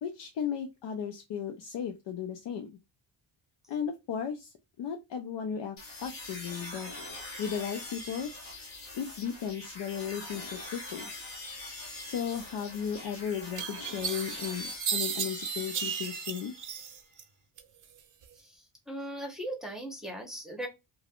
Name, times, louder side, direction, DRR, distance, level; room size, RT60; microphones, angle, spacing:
voice 1, 0.0-2.7 3.7-6.9 7.4-8.3 8.9-11.1 12.0-16.5, left 8 dB, 60° left, 4 dB, 0.7 m, -35 dB
sound 1, 5.8-16.9, left 2 dB, 45° left, 1.5 m, -43 dB
sound 2, 12.8-12.9 13.6-17.2 17.6-18.3, right 7 dB, 40° right, 0.6 m, -35 dB
voice 2, 18.9-20.7, right 1 dB, ahead, 2 dB, 1.0 m, -38 dB
3.2 x 2.4 x 2.4 m, 0.23 s
supercardioid pair, 60°, 48 cm